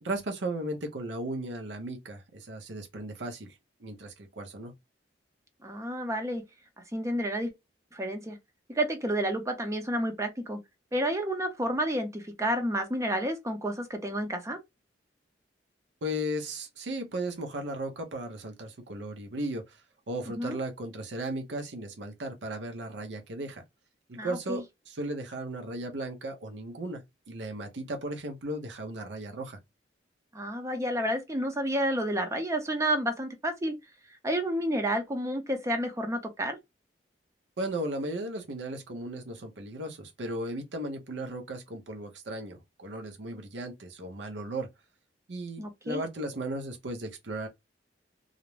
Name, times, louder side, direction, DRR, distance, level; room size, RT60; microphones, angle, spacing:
voice 1, 0.0-3.5 3.8-4.7 16.0-19.6 20.1-23.6 24.1-27.0 27.3-29.6 37.6-44.7 45.3-47.5, right 1 dB, 75° right, 0.7 m, -36 dB
voice 2, 5.6-6.4 6.9-7.5 7.9-8.4 8.7-10.6 10.9-14.6 20.3-20.6 24.2-24.6 30.3-33.7 34.2-36.6 45.6-46.0, right 1 dB, 15° right, 0.5 m, -30 dB
2.5 x 2.0 x 3.0 m
head